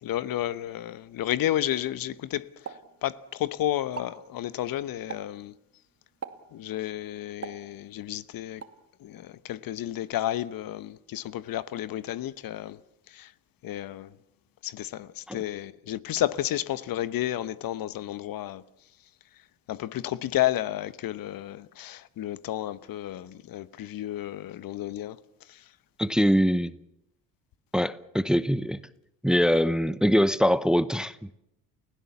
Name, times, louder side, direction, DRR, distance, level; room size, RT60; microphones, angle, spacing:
voice 1, 0.0-5.5 6.5-8.6 9.0-12.8 13.1-13.3 13.6-14.2 14.6-18.6 19.7-25.7, left 13 dB, 55° left, 1.1 m, -32 dB
Explosion, 2.7-3.5 3.8-4.3 5.1-5.5 6.2-6.6 7.4-8.1 8.6-8.9, right 6 dB, 35° right, 2.5 m, -41 dB
voice 2, 26.0-26.7 27.7-28.8 29.2-31.3, equal, ahead, 0.8 m, -23 dB
30.0 x 16.0 x 7.2 m
hypercardioid pair, 70°, 42 cm